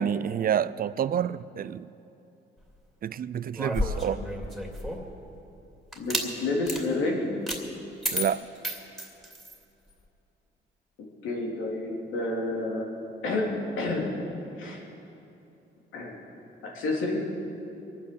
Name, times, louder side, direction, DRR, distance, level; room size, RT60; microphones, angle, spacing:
voice 1, 0.0-1.9 3.0-4.2 8.1-8.5, right 9 dB, 45° right, 17 dB, 0.5 m, -28 dB
sound 1, 3.5-5.1 5.9-6.3 6.6-6.8 7.5-7.6 8.0-9.6, equal, ahead, 2.5 m, -31 dB
voice 2, 5.9-7.3 11.2-12.9 13.2-13.5 13.8-14.1 14.6-14.8 15.9-16.2 16.6-17.2, left 2 dB, 85° left, -2 dB, 3.3 m, -29 dB
22.5 x 9.4 x 6.8 m, 2.8 s
cardioid pair, 90°, 20 cm